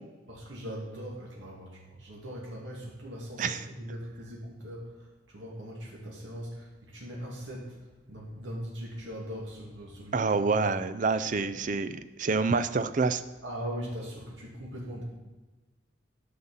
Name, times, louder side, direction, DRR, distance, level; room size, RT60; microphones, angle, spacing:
voice 1, 0.3-4.9 5.3-10.5 11.4-11.5 13.4-15.0, equal, 80° right, -4 dB, 2.3 m, -40 dB
voice 2, 10.1-13.2, right 4 dB, 40° right, 12 dB, 0.4 m, -27 dB
9.7 x 5.8 x 5.6 m, 1.2 s
head